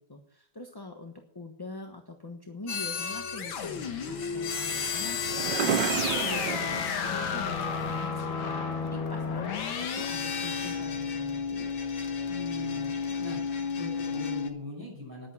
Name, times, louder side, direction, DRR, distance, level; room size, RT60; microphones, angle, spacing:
voice 1, 0.0-11.7, left 2 dB, 15° left, 3 dB, 0.9 m, -43 dB
sound 1, 2.7-14.5, left 6 dB, 85° left, 2.1 m, -32 dB
sound 2, 4.5-8.1, right 8 dB, 70° right, 1.5 m, -33 dB
voice 2, 12.3-12.9 13.2-13.4 13.8-15.3, left 2 dB, 10° right, -2 dB, 5.9 m, -40 dB
11.0 x 9.1 x 7.3 m, 0.64 s
omnidirectional pair, 2.1 m